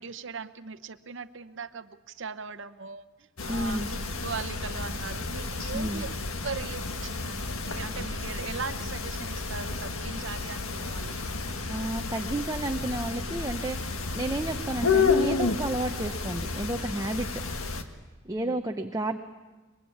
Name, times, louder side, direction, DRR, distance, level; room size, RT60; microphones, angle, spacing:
voice 1, 0.0-6.1 6.4-11.1 18.4-18.6, right 5 dB, 60° right, 12 dB, 0.9 m, -39 dB
sound 1, 3.4-17.8, left 4 dB, 80° left, 1.6 m, -31 dB
voice 2, 3.5-3.9 5.7-6.0 11.7-17.3 18.2-19.2, right 1 dB, 15° right, 5 dB, 0.7 m, -31 dB
23.0 x 22.0 x 8.5 m, 1.3 s
head